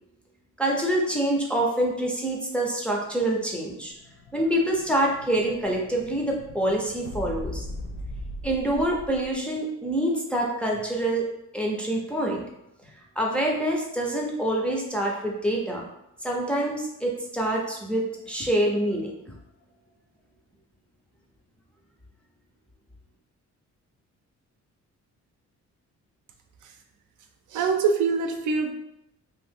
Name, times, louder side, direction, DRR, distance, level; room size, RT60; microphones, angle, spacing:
voice 1, 0.6-3.9 4.3-7.7 8.4-11.3 11.5-12.4 13.2-15.8 16.2-19.2, right 1 dB, 5° left, -2 dB, 0.4 m, -26 dB
Explosion, 3.4-9.4, left 1 dB, 55° left, 0.6 m, -39 dB
voice 2, 27.5-28.7, right 5 dB, 90° right, 4 dB, 0.5 m, -24 dB
2.7 x 2.5 x 3.5 m, 0.82 s
cardioid pair, 165°, 29 cm